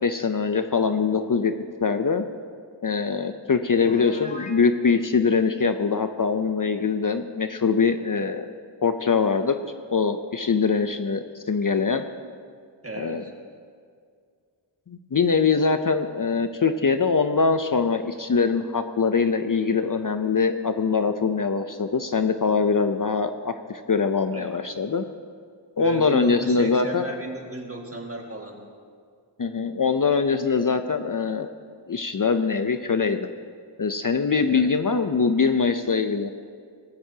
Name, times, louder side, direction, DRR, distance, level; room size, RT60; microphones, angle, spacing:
voice 1, 0.0-1.5 1.8-2.3 2.8-8.5 8.8-9.6 9.9-12.0 13.0-13.2 14.9-25.1 25.8-27.0 29.4-31.5 31.9-33.3 33.8-36.3, left 5 dB, 45° left, 8 dB, 0.6 m, -23 dB
Piano, 3.8-4.6, left 2 dB, 15° left, 0.9 m, -38 dB
voice 2, 12.8-13.3 24.3-24.5 25.8-28.7 34.3-34.7, right 1 dB, 30° right, 0 dB, 1.9 m, -35 dB
18.5 x 15.0 x 2.8 m, 2.2 s
wide cardioid pair, 55°, 46 cm